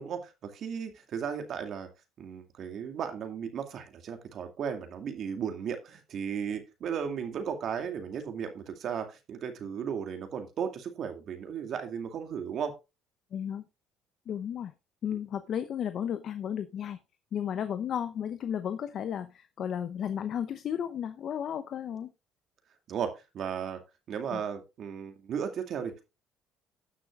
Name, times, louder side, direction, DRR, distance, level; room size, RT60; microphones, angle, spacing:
voice 1, 0.0-1.9 2.2-12.7 22.9-23.8 24.1-26.1, right 7 dB, 60° right, 6 dB, 2.3 m, -35 dB
voice 2, 13.3-13.6 14.3-14.7 15.0-17.0 17.3-22.1 24.3-24.4, left 9 dB, 55° left, 11 dB, 0.8 m, -33 dB
17.5 x 6.4 x 2.4 m, 0.26 s
supercardioid pair, 75°, 0 cm